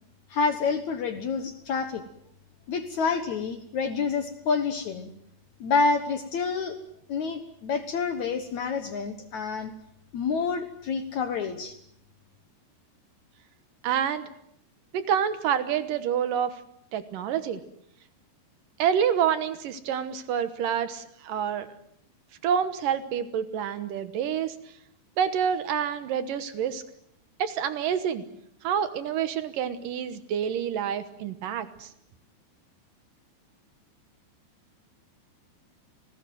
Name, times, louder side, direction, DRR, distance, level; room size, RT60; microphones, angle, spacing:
voice 1, 0.3-2.0 2.7-5.1 5.6-6.8 7.1-9.7 10.1-11.7, left 5 dB, 75° left, 8 dB, 1.6 m, -28 dB
voice 2, 13.8-14.3 14.9-16.6 16.9-17.6 18.8-21.7 22.4-24.5 25.2-26.8 27.4-28.2 28.6-31.9, right 8 dB, 70° right, 11 dB, 2.1 m, -27 dB
28.5 x 19.5 x 7.7 m, 0.74 s
omnidirectional pair, 5.3 m